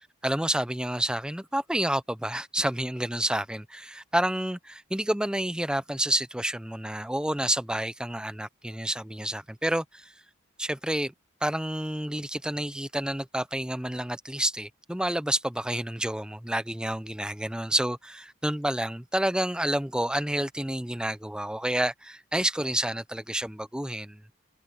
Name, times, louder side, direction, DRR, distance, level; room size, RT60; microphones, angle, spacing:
voice 1, 0.2-10.1 10.6-11.1 11.4-24.2, right 1 dB, 5° right, 0.7 m, -29 dB
head